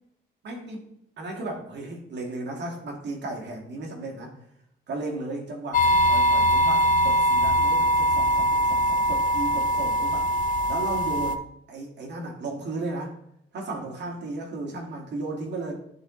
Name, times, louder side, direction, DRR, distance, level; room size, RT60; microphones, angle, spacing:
voice 1, 0.4-0.8 1.2-4.3 4.9-10.3 10.7-11.4 11.7-13.1 13.5-15.7, right 2 dB, 60° right, 1 dB, 1.8 m, -35 dB
sound 1, 5.7-11.4, equal, 40° left, 0.5 m, -22 dB
10.0 x 3.6 x 3.0 m, 0.73 s
cardioid pair, 90°, 20 cm